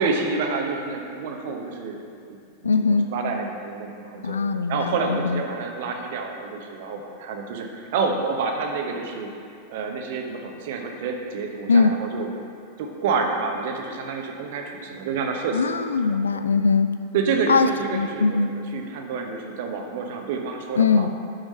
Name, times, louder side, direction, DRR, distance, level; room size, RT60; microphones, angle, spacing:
voice 1, 0.0-2.4 2.7-4.4 4.7-9.3 9.7-12.3 12.8-15.6 16.1-16.4 17.1-21.1, right 4 dB, 50° right, 3 dB, 0.8 m, -28 dB
voice 2, 2.6-3.1 4.2-5.4 11.7-12.0 15.5-16.9 17.5-18.5 20.8-21.1, left 4 dB, 75° left, 10 dB, 0.3 m, -21 dB
6.2 x 5.0 x 5.4 m, 2.4 s
figure-of-eight pair, 90°, 0 cm